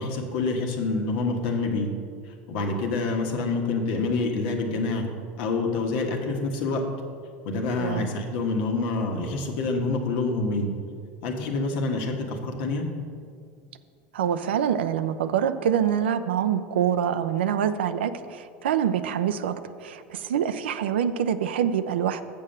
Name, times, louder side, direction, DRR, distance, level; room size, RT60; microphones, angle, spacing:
voice 1, 0.0-1.9 2.5-5.1 5.4-6.8 7.4-10.7 11.2-12.9, left 3 dB, 70° left, 2 dB, 1.4 m, -27 dB
voice 2, 14.1-22.2, right 9 dB, 90° right, 10 dB, 0.4 m, -25 dB
7.2 x 6.7 x 6.6 m, 2.2 s
hypercardioid pair, 100°, 6 cm